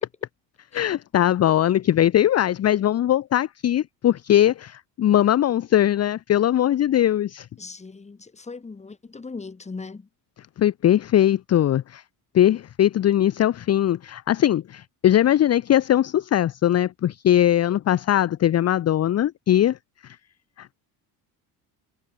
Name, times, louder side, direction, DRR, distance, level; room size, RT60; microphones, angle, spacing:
voice 1, 0.7-7.5 10.6-12.0 12.3-19.8 20.0-20.2 20.6-20.7, left 11 dB, 35° left, 0.6 m, -20 dB
voice 2, 7.6-10.1, left 4 dB, 15° left, 1.2 m, -38 dB
supercardioid pair, 85°, 43 cm